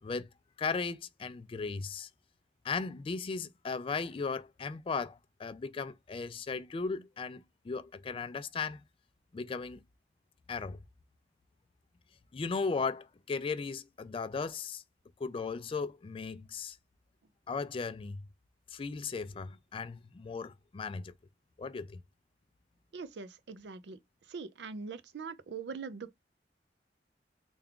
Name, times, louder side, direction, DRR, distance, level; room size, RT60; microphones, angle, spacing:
voice 1, 0.6-2.1 2.6-8.8 9.3-9.8 10.5-10.8 12.3-14.8 15.2-16.8 17.5-18.3 18.7-21.1 21.6-22.0, left 4 dB, 30° left, 0.3 m, -36 dB
voice 2, 22.9-24.0 24.3-26.2, right 5 dB, 75° right, 0.5 m, -42 dB
3.4 x 2.3 x 3.6 m
head